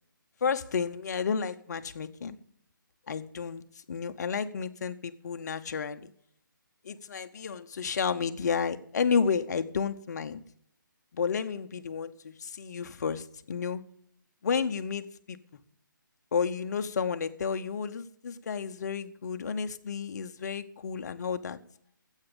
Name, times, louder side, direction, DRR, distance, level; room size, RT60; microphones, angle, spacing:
voice 1, 0.4-2.4 3.1-3.6 3.9-6.1 6.8-10.4 11.1-13.8 14.4-15.4 16.3-21.6, left 6 dB, 55° left, 11 dB, 0.8 m, -31 dB
12.0 x 8.2 x 7.0 m, 0.68 s
hypercardioid pair, 160°, 11 cm